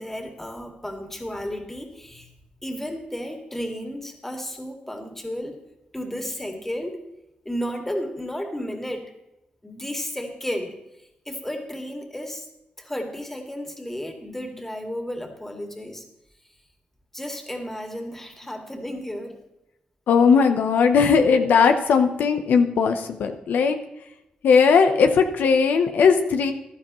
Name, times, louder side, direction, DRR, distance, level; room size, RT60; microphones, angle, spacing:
voice 1, 0.0-2.3 2.6-5.6 5.9-7.0 7.5-9.1 9.6-10.8 11.3-12.5 12.8-16.0 17.1-19.4, equal, 10° left, 3 dB, 2.1 m, -33 dB
voice 2, 20.1-23.8 24.4-26.5, left 5 dB, 90° left, 7 dB, 0.8 m, -18 dB
15.5 x 12.0 x 3.1 m, 0.87 s
cardioid pair, 85°, 3 cm